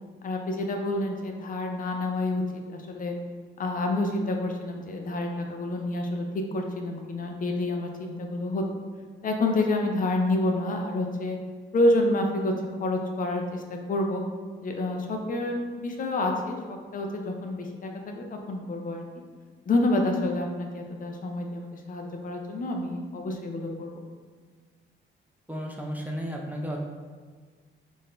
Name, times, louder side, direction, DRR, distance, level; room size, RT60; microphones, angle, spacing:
voice 1, 0.2-2.4 2.7-3.2 3.6-6.2 6.5-8.6 9.2-11.4 11.7-12.5 12.8-14.2 14.6-19.0 19.7-23.9, left 2 dB, 45° left, 2 dB, 0.5 m, -28 dB
voice 2, 25.5-26.8, equal, 10° right, -1 dB, 0.4 m, -33 dB
3.9 x 2.5 x 3.3 m, 1.5 s
cardioid pair, 90°, 20 cm